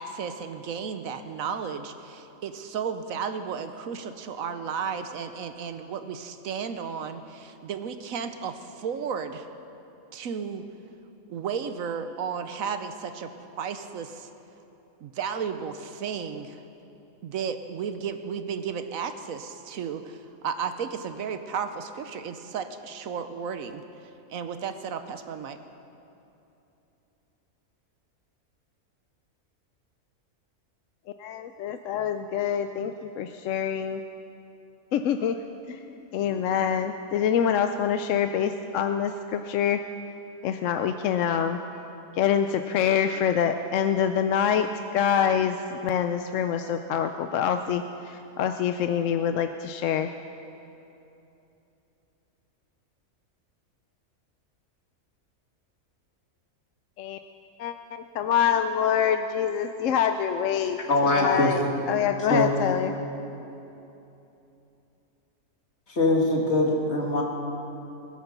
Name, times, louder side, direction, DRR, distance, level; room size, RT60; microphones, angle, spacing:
voice 1, 0.0-9.5 10.1-10.6 11.3-13.3 13.6-14.3 15.0-16.6 17.2-23.8 24.3-25.6, right 6 dB, 75° right, 9 dB, 1.2 m, -33 dB
voice 2, 31.2-34.0 34.9-35.4 35.7-35.8 36.1-39.8 40.4-41.6 42.1-44.7 44.9-45.6 45.8-50.1 57.0-57.2 57.6-57.7 58.1-60.8 61.1-61.6 61.9-62.9, left 8 dB, 70° left, 7 dB, 0.9 m, -25 dB
voice 3, 60.9-61.5 62.3-62.5 65.9-67.2, left 2 dB, 50° left, -1 dB, 2.5 m, -22 dB
20.5 x 10.5 x 6.8 m, 2.9 s
omnidirectional pair, 1.5 m